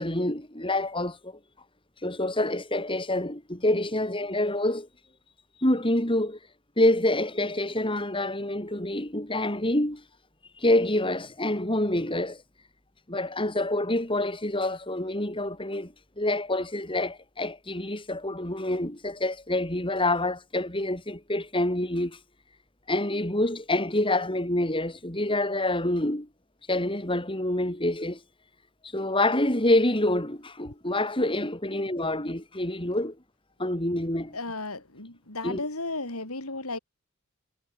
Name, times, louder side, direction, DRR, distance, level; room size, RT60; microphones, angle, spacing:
voice 1, 0.0-1.4 2.0-4.9 5.6-6.4 6.8-10.0 10.6-12.4 13.1-22.2 22.9-26.3 26.7-28.2 28.8-33.2 33.6-34.4 35.4-35.6, left 1 dB, 25° left, 6.2 m, -27 dB
voice 2, 34.3-36.8, left 2 dB, 80° left, 6.5 m, -34 dB
head